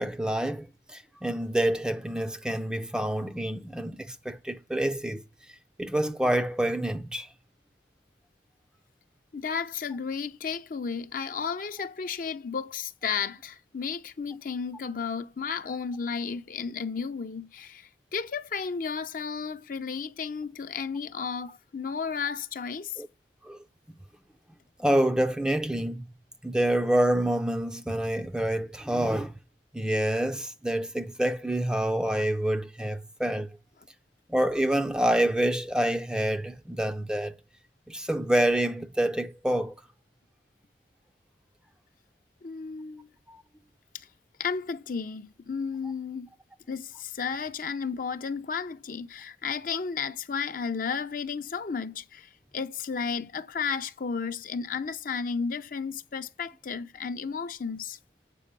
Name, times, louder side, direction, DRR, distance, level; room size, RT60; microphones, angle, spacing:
voice 1, 0.0-5.2 5.8-7.3 23.0-23.1 23.4-23.6 24.8-26.1 26.4-29.3 29.7-33.5 34.3-37.4 37.9-39.7 43.3-43.4, right 1 dB, 5° right, 0.4 m, -27 dB
voice 2, 9.3-23.0 42.4-43.1 43.9-44.1 44.4-46.3 46.7-58.0, left 6 dB, 45° left, 0.5 m, -33 dB
8.5 x 5.1 x 5.3 m
head